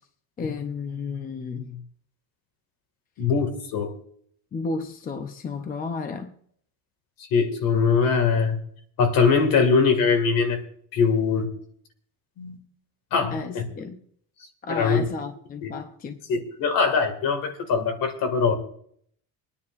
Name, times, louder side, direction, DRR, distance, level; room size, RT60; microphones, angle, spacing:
voice 1, 0.4-1.8 4.5-6.3 13.3-14.0 14.6-16.2, left 4 dB, 20° left, 6 dB, 0.7 m, -32 dB
voice 2, 3.2-3.9 7.3-8.6 9.0-10.6 10.9-11.5 12.4-12.6 13.1-13.7 14.7-15.0 15.6-15.7 16.3-18.5, left 5 dB, 60° left, 6 dB, 2.2 m, -22 dB
25.5 x 9.8 x 2.6 m, 0.63 s
cardioid pair, 175°, 39 cm